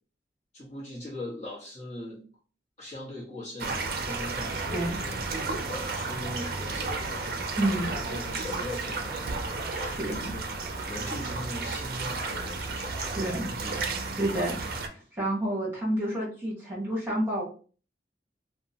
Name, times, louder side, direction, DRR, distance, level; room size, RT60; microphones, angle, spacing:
voice 1, 0.5-2.2 2.8-7.3 7.6-13.2 13.4-13.8, left 1 dB, 40° left, -6 dB, 1.0 m, -40 dB
Cieszyn street Wenecja, 3.6-14.9, right 3 dB, 55° right, 0.4 m, -33 dB
voice 2, 7.6-8.0 10.0-10.1 13.2-13.5 14.2-17.4, right 1 dB, 15° right, -6 dB, 1.1 m, -29 dB
2.8 x 2.1 x 2.8 m, 0.38 s
head